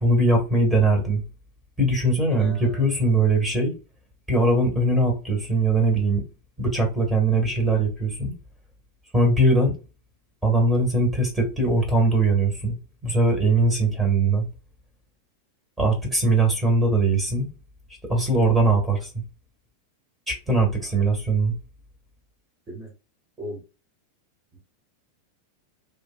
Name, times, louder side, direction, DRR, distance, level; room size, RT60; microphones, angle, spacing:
voice 1, 0.0-1.2 1.8-3.8 4.3-6.2 6.6-8.3 9.1-9.7 10.4-12.8 13.0-14.4 15.8-17.5 18.1-19.1 20.3-21.5, right 2 dB, 10° right, 1.5 m, -21 dB
voice 2, 2.3-3.1 20.8-20.9 22.7-22.9 23.4-23.6 24.5-24.6, right 2 dB, 25° right, 1.8 m, -38 dB
3.5 x 2.5 x 2.2 m
figure-of-eight pair, 90°, 0 cm